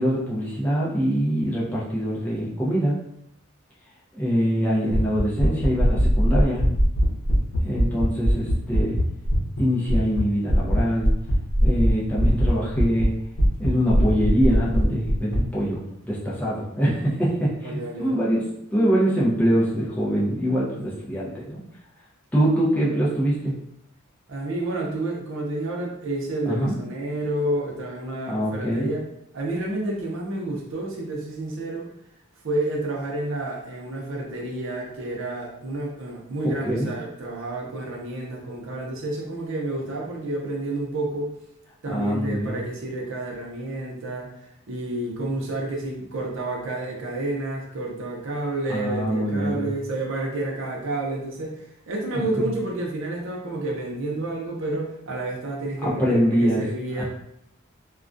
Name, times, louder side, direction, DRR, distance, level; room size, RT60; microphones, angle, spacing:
voice 1, 0.0-3.0 4.1-6.7 7.6-9.0 9.6-11.1 11.6-13.1 13.6-18.4 18.7-21.6 22.3-23.6 26.5-26.7 28.3-28.9 36.6-36.9 41.9-42.6 48.7-49.7 52.1-52.5 55.8-56.6 57.0-57.1, equal, 10° left, -6 dB, 0.5 m, -24 dB
sound 1, 4.9-9.6 9.9-10.2 10.5-13.1 13.4-15.4, equal, 80° left, 0.7 m, -20 dB
voice 2, 17.6-18.2 24.3-29.1 29.3-31.9 32.4-41.3 41.8-44.3 44.7-57.0, right 2 dB, 65° right, -1 dB, 0.5 m, -30 dB
2.3 x 2.2 x 2.5 m, 0.76 s
head